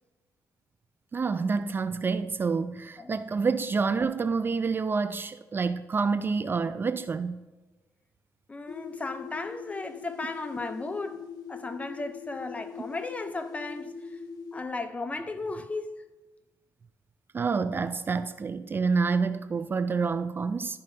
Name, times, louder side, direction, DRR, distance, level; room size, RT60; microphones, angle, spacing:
voice 1, 1.1-7.4 17.3-20.8, right 4 dB, 35° right, 0.3 m, -28 dB
voice 2, 8.5-14.2 14.5-15.9, left 3 dB, 20° left, 0.7 m, -35 dB
sound 1, 8.7-14.6, left 6 dB, 80° left, 0.7 m, -42 dB
12.0 x 5.4 x 2.7 m
cardioid pair, 95°, 7 cm